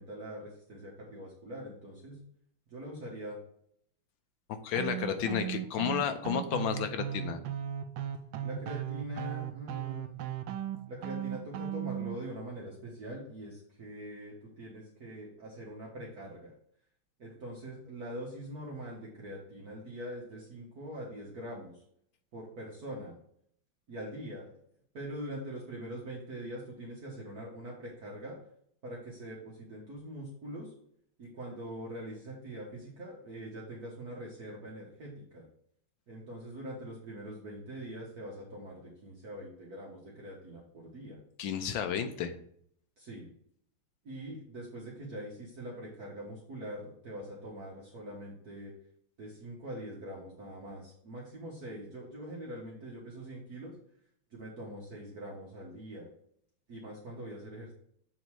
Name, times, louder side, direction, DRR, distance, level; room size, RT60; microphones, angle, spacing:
voice 1, 0.0-2.2 2.7-3.4 8.4-10.1 10.9-16.5 17.2-21.8 22.3-23.1 23.9-24.5 24.9-28.4 28.8-30.7 31.2-35.4 36.1-41.2 43.0-43.3 44.0-48.7 49.2-53.7 54.3-56.1 56.7-57.7, right 1 dB, 50° right, -4 dB, 1.7 m, -43 dB
voice 2, 4.5-7.4 41.4-42.3, left 7 dB, 70° left, 8 dB, 1.4 m, -32 dB
sound 1, 4.8-12.2, right 11 dB, 75° right, 1.4 m, -37 dB
7.4 x 4.0 x 4.7 m, 0.66 s
omnidirectional pair, 2.3 m